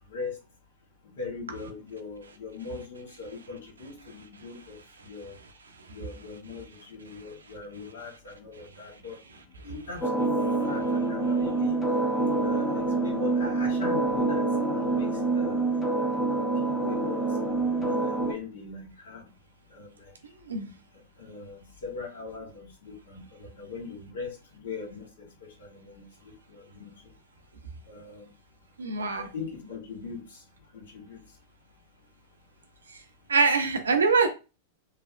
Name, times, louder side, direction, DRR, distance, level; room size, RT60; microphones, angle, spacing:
voice 1, 1.2-4.8 5.1-5.3 5.9-9.2 9.6-10.2 10.6-11.8 12.3-15.7 16.2-16.4 16.8-19.2 19.7-19.9 21.2-24.3 24.6-26.0 26.5-26.9 27.9-28.3 29.0-30.2 30.7-31.2, left 4 dB, 70° left, 1.2 m, -40 dB
sound 1, 10.0-18.3, right 3 dB, 20° left, 0.7 m, -26 dB
voice 2, 28.8-29.3 33.3-34.3, right 4 dB, 85° right, 0.6 m, -23 dB
3.2 x 2.0 x 2.4 m
hypercardioid pair, 100°, 0 cm